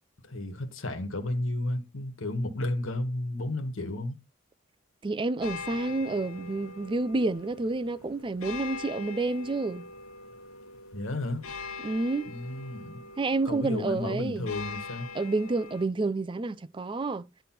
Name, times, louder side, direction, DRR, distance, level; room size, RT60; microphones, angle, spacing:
voice 1, 0.3-4.2 10.9-11.4 12.2-13.0 13.4-15.1, left 1 dB, 65° left, 1.5 m, -32 dB
voice 2, 5.0-9.9 11.8-12.3 13.2-14.5 15.1-17.3, right 3 dB, 25° right, 0.4 m, -29 dB
sound 1, 5.4-15.9, left 4 dB, 85° left, 1.2 m, -43 dB
10.0 x 3.4 x 5.8 m
head